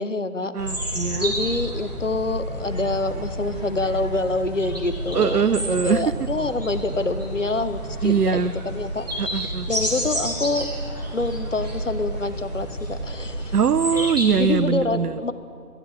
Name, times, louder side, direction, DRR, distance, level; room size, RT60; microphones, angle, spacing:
voice 1, 0.0-0.5 1.2-9.1 9.3-10.7 11.1-13.5 13.9-14.1 14.4-15.3, left 3 dB, 55° left, 12 dB, 0.5 m, -26 dB
voice 2, 0.5-1.3 5.1-6.0 8.0-8.5 9.2-9.7 13.5-15.2, right 7 dB, 80° right, 18 dB, 0.5 m, -22 dB
sound 1, 0.6-14.7, right 1 dB, 25° right, 1.5 m, -30 dB
13.0 x 10.5 x 5.9 m, 2.5 s
figure-of-eight pair, 165°, 46 cm